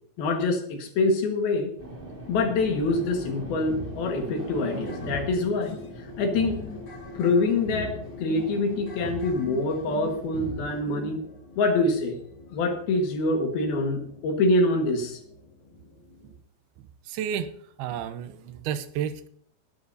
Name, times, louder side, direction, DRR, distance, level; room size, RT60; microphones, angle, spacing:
voice 1, 0.2-1.7 2.3-5.8 6.2-6.6 7.2-11.2 11.6-12.2 12.5-15.2, left 2 dB, 75° left, 3 dB, 3.5 m, -25 dB
sound 1, 1.8-10.3, right 1 dB, 20° right, 1.4 m, -42 dB
sound 2, 3.7-16.3, left 1 dB, 30° left, 3.1 m, -41 dB
voice 2, 16.8-17.5 17.8-19.3, right 9 dB, 85° right, 11 dB, 2.7 m, -32 dB
18.5 x 12.0 x 2.8 m, 0.65 s
omnidirectional pair, 4.5 m